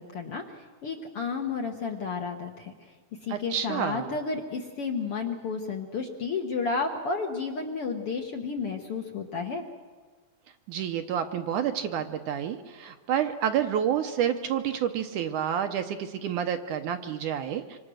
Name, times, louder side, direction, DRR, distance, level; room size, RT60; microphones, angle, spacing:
voice 1, 0.0-2.7 3.2-9.6, left 4 dB, 55° left, 3 dB, 1.8 m, -32 dB
voice 2, 3.3-4.2 10.7-17.8, right 9 dB, 70° right, 7 dB, 2.2 m, -29 dB
26.0 x 25.5 x 6.4 m, 1.4 s
omnidirectional pair, 4.2 m